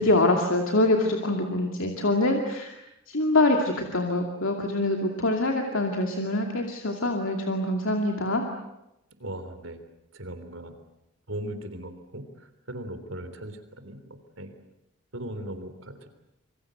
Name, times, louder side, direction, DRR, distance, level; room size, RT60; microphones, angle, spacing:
voice 1, 0.0-2.7 3.1-8.4, left 2 dB, 70° left, 2 dB, 2.5 m, -24 dB
voice 2, 9.2-9.8 10.1-10.8 11.3-14.5 15.1-16.1, right 1 dB, 70° right, 9 dB, 3.6 m, -38 dB
27.0 x 24.5 x 8.0 m, 0.87 s
head